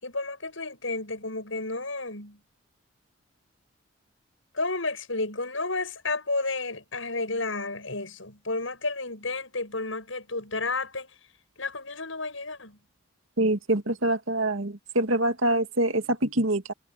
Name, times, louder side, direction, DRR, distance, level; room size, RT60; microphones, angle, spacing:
voice 1, 0.0-2.4 4.5-11.1 11.6-12.8, left 3 dB, 75° left, 7.7 m, -31 dB
voice 2, 13.4-16.7, right 1 dB, 80° right, 2.3 m, -25 dB
head